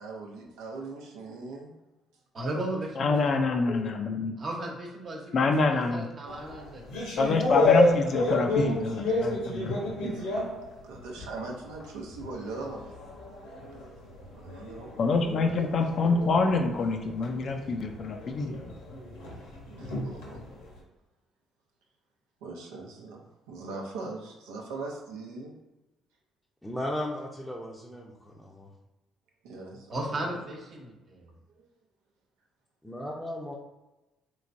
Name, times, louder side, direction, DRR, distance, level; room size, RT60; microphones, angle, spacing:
voice 1, 0.0-1.7 5.3-5.4 10.0-10.3 10.8-13.0 14.3-15.8 19.7-20.4 22.4-25.6 29.4-30.4 31.6-31.7, right 3 dB, 85° right, 0 dB, 0.6 m, -40 dB
voice 2, 2.3-3.6 4.4-7.1 9.5-9.9 29.9-31.3, right 1 dB, 50° right, -1 dB, 1.0 m, -36 dB
voice 3, 3.0-4.4 5.3-6.1 7.2-9.8 15.0-18.6, left 3 dB, 55° left, 3 dB, 0.4 m, -26 dB
sound 1, 6.3-11.4 11.8-20.7, left 2 dB, 85° left, 1.1 m, -30 dB
voice 4, 26.6-28.7 32.8-33.6, left 1 dB, 10° left, -5 dB, 0.6 m, -36 dB
3.3 x 3.1 x 2.6 m, 1.0 s
hypercardioid pair, 55°, 0 cm